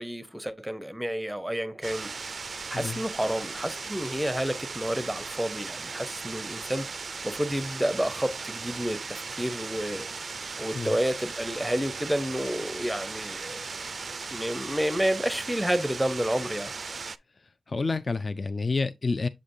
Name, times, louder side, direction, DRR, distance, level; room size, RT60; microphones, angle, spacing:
voice 1, 0.0-2.1 2.7-10.1 10.6-13.7 14.3-16.7, equal, 5° right, 0.6 m, -30 dB
sound 1, 1.8-17.2, right 4 dB, 50° right, 0.3 m, -37 dB
voice 2, 17.7-19.3, left 3 dB, 35° left, 0.4 m, -28 dB
7.4 x 5.0 x 2.6 m
wide cardioid pair, 110°, 0 cm